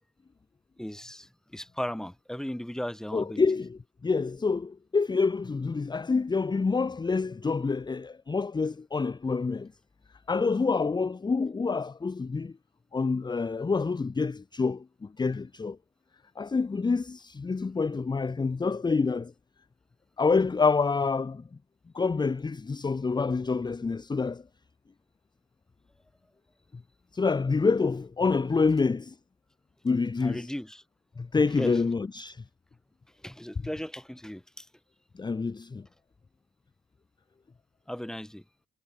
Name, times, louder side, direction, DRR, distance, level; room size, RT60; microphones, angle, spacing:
voice 1, 0.8-3.4 30.2-30.8 31.6-31.7 33.2-34.7 37.9-38.4, equal, 5° left, 2.0 m, -36 dB
voice 2, 3.1-9.7 10.3-12.5 12.9-15.8 16.4-19.3 20.2-21.4 21.9-24.4 27.1-29.2 29.8-30.5 31.2-32.4 35.1-35.9, left 4 dB, 20° left, 0.8 m, -27 dB
cardioid pair, 90°, 20 cm